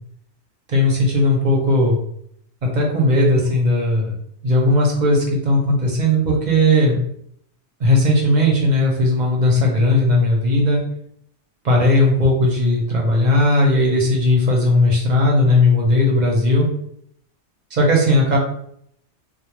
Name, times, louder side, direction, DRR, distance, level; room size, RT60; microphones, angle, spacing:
voice 1, 0.7-2.0 2.6-4.1 4.4-7.0 7.8-10.8 11.6-16.7 17.7-18.4, left 1 dB, 45° right, -2 dB, 0.7 m, -17 dB
2.3 x 2.1 x 3.0 m, 0.69 s
omnidirectional pair, 1.2 m